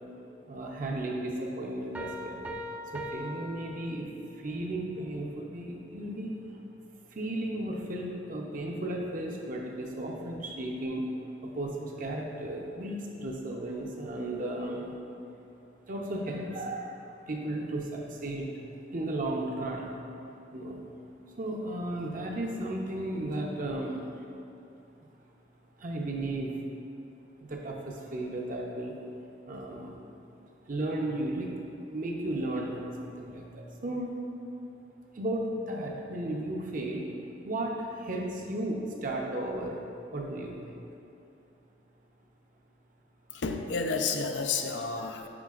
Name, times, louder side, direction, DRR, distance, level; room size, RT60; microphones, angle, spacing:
voice 1, 0.5-2.4 2.9-4.1 4.4-6.4 7.1-11.1 11.4-15.0 15.9-18.6 18.9-19.9 20.5-20.8 21.3-24.2 25.8-26.6 27.5-29.0 29.5-30.0 30.7-31.5 31.9-34.1 35.1-37.1 37.4-39.8 40.1-40.8, right 1 dB, 50° right, 0 dB, 0.7 m, -34 dB
sound 1, 1.9-4.4, equal, 10° right, 0.4 m, -40 dB
voice 2, 43.3-45.3, left 4 dB, 85° left, 5 dB, 0.5 m, -31 dB
9.7 x 4.5 x 2.5 m, 2.8 s
head